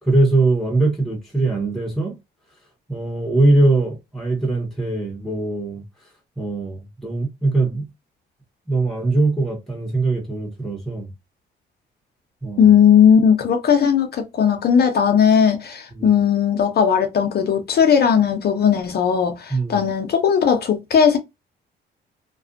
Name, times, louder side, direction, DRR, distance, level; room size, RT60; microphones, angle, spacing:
voice 1, 0.0-2.2 2.9-5.8 6.4-7.9 8.7-11.1 12.4-12.7 15.9-16.1 19.5-19.8, right 2 dB, ahead, 1.0 m, -21 dB
voice 2, 12.6-21.2, left 7 dB, 55° left, 0.6 m, -17 dB
2.4 x 2.3 x 2.5 m
cardioid pair, 90°, 20 cm